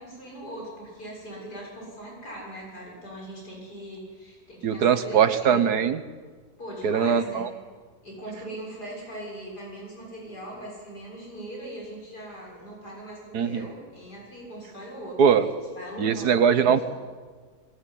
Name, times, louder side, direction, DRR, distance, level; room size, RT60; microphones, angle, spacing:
voice 1, 0.0-5.7 6.6-7.6 8.0-16.8, right 1 dB, 90° left, -3 dB, 7.4 m, -40 dB
voice 2, 4.6-6.0 6.8-7.5 13.3-13.7 15.2-15.5 16.0-16.8, right 7 dB, 80° right, 11 dB, 1.8 m, -21 dB
22.5 x 19.0 x 10.0 m, 1.5 s
omnidirectional pair, 1.7 m